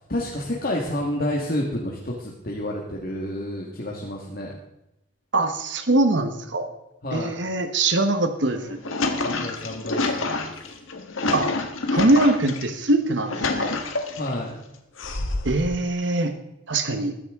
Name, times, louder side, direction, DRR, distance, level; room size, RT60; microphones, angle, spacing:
voice 1, 0.1-4.5 7.0-7.5 9.2-10.7 14.1-14.6, left 1 dB, 45° left, -2 dB, 1.6 m, -29 dB
voice 2, 5.3-6.7 7.1-8.8 11.3-11.5 11.9-13.7 15.4-16.3 16.7-17.1, right 2 dB, 60° right, 8 dB, 1.1 m, -22 dB
sound 1, 8.5-12.6 13.1-14.3 15.0-15.7, left 3 dB, 85° left, 1.6 m, -27 dB
20.5 x 10.0 x 3.6 m, 0.89 s
head